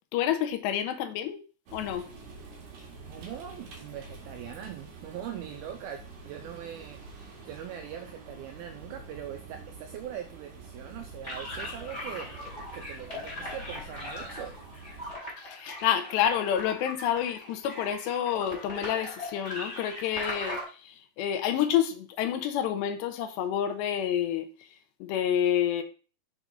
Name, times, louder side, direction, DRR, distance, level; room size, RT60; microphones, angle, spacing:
voice 1, 0.1-1.4 1.7-2.1 15.4-24.5 25.0-25.8, left 10 dB, 85° left, 2.9 m, -28 dB
sound 1, 1.7-15.1, right 3 dB, 55° right, 2.7 m, -47 dB
voice 2, 3.1-14.6, right 10 dB, 80° right, 2.3 m, -42 dB
sound 2, 11.2-20.6, left 1 dB, 10° left, 4.1 m, -39 dB
6.9 x 6.1 x 3.8 m
omnidirectional pair, 4.9 m